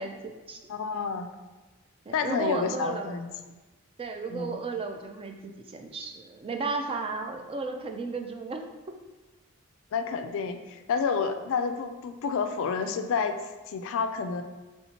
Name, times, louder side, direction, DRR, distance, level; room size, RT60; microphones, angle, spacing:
voice 1, 0.0-0.6 2.1-3.1 4.0-8.6, right 3 dB, 25° right, 4 dB, 0.3 m, -34 dB
voice 2, 0.7-1.3 2.1-3.3 4.3-4.6 9.9-13.4 13.7-14.4, left 5 dB, 60° left, 8 dB, 0.3 m, -29 dB
4.3 x 3.4 x 2.8 m, 1.2 s
head